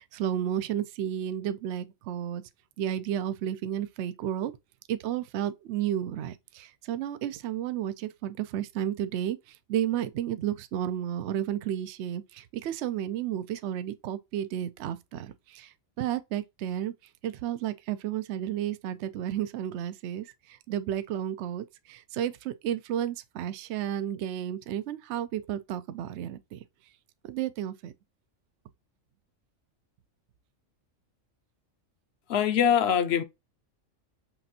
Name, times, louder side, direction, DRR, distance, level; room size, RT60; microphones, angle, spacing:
voice 1, 0.0-2.4 2.8-4.5 4.9-16.9 17.2-26.6 27.2-27.9, right 10 dB, 65° right, 0.8 m, -32 dB
voice 2, 32.3-33.2, left 8 dB, 55° left, 0.9 m, -23 dB
5.9 x 2.6 x 2.7 m
omnidirectional pair, 1.4 m